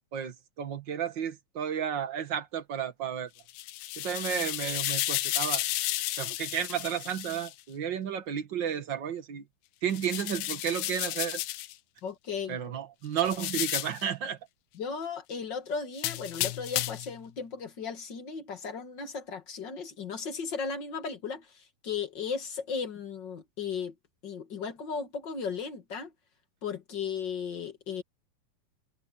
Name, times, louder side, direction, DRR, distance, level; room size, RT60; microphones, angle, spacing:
voice 1, 0.1-3.3 4.0-5.6 6.2-9.4 9.8-11.4 12.5-14.4, right 8 dB, 45° right, 1.5 m, -32 dB
sound 1, 3.4-7.5 9.9-11.7 13.2-14.0 16.0-17.1, left 16 dB, 90° left, 2.8 m, -32 dB
voice 2, 12.0-12.6 14.7-23.9 24.2-26.1 26.6-28.0, left 6 dB, 40° left, 2.0 m, -36 dB
omnidirectional pair, 4.3 m